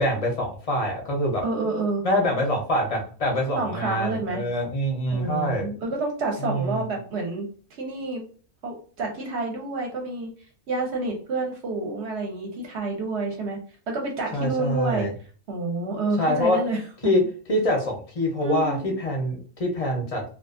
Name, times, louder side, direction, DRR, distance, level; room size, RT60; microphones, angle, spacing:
voice 1, 0.0-1.4 2.0-5.6 6.4-6.9 14.3-15.1 16.2-16.6 17.0-17.2 17.5-20.3, left 1 dB, 45° left, 0 dB, 0.5 m, -25 dB
voice 2, 1.4-2.0 3.5-4.4 5.1-8.2 8.6-10.3 10.7-13.6 13.9-15.1 15.5-17.1 18.4-18.9, right 2 dB, 60° right, 1 dB, 0.9 m, -29 dB
2.4 x 2.3 x 2.4 m, 0.41 s
omnidirectional pair, 1.4 m